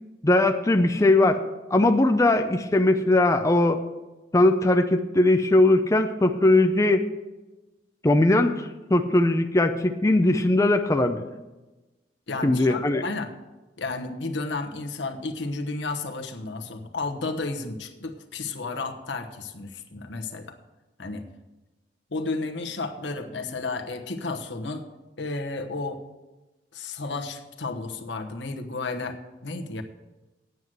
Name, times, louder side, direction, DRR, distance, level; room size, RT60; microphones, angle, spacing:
voice 1, 0.2-1.4 1.7-3.8 4.3-7.1 8.0-11.2 12.4-13.1, left 2 dB, 15° left, 6 dB, 0.5 m, -20 dB
voice 2, 12.3-13.3 13.8-20.6 21.0-21.2 22.1-24.9 25.2-26.0 26.7-29.8, left 3 dB, 75° left, 5 dB, 1.1 m, -32 dB
9.4 x 7.6 x 7.8 m, 1.1 s
head